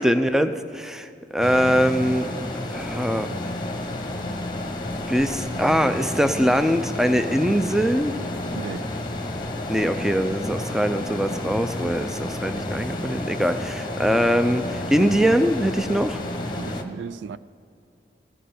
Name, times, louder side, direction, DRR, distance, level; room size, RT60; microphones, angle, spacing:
voice 1, 0.0-2.3 2.7-3.3 5.1-8.2 9.7-16.2, equal, 5° right, 0.4 m, -22 dB
sound 1, 1.4-16.8, left 1 dB, 25° left, 0.9 m, -31 dB
voice 2, 8.5-8.9 16.6-17.4, right 5 dB, 85° right, 0.3 m, -35 dB
15.0 x 6.6 x 9.4 m
head